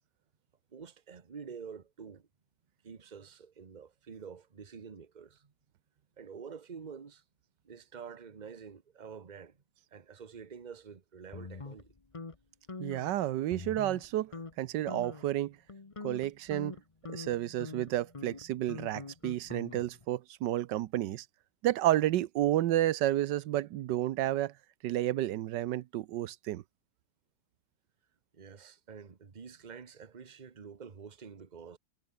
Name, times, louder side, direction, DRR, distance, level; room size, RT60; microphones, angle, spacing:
voice 1, 0.7-2.3 2.8-5.5 6.2-7.2 7.6-9.6 9.9-11.9 28.3-31.8, right 6 dB, 30° right, 1.2 m, -48 dB
sound 1, 11.3-12.4 12.7-13.1 13.5-14.1 14.3-14.5 14.9-15.3 15.7-20.0, left 3 dB, 20° left, 1.1 m, -44 dB
voice 2, 12.8-14.3 14.6-15.6 16.0-16.8 17.1-21.2 21.6-24.5 24.8-26.6, right 14 dB, 85° right, 1.4 m, -31 dB
omnidirectional pair, 1.8 m